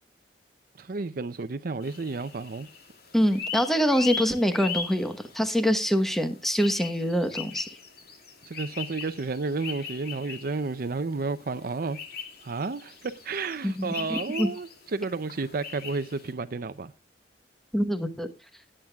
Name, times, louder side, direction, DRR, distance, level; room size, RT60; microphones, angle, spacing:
voice 1, 0.8-2.7 8.5-12.0 12.4-16.9, right 3 dB, 55° right, 0.6 m, -31 dB
sound 1, 1.8-16.3, left 5 dB, 60° left, 2.6 m, -39 dB
voice 2, 3.1-7.7 13.6-14.5 17.7-18.3, equal, ahead, 1.2 m, -25 dB
20.0 x 8.8 x 2.3 m
head